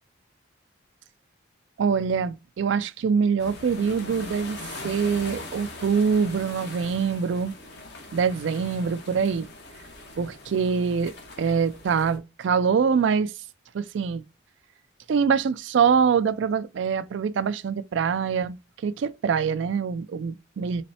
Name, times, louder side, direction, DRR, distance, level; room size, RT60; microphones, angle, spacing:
voice 1, 1.8-4.6 4.8-7.5 8.1-9.5 10.2-11.1 11.4-13.3 13.7-14.2 15.1-20.8, right 6 dB, 65° right, 0.3 m, -24 dB
sound 1, 3.4-12.2, left 2 dB, 60° left, 1.1 m, -41 dB
4.2 x 3.1 x 2.8 m
head